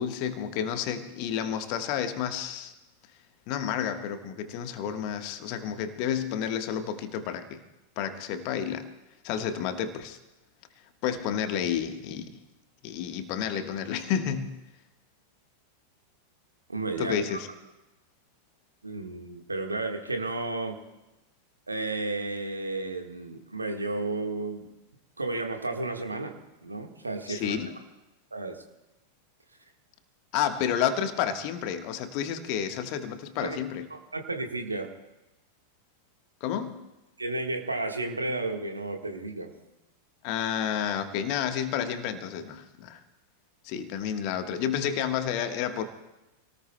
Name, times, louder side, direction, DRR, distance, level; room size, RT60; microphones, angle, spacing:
voice 1, 0.0-2.7 3.5-7.6 8.0-8.9 9.2-10.2 11.0-12.4 12.8-14.6 17.0-17.5 27.3-27.7 30.3-33.9 36.4-36.8 40.2-43.0 43.6-45.8, left 8 dB, 45° left, 8 dB, 1.3 m, -30 dB
voice 2, 16.7-17.2 18.8-20.8 21.7-24.7 25.2-26.3 26.6-27.6 28.3-28.6 33.4-33.6 33.9-34.9 37.2-39.5, right 2 dB, 80° right, 4 dB, 1.5 m, -32 dB
28.5 x 18.5 x 2.2 m, 0.97 s
figure-of-eight pair, 90°, 0 cm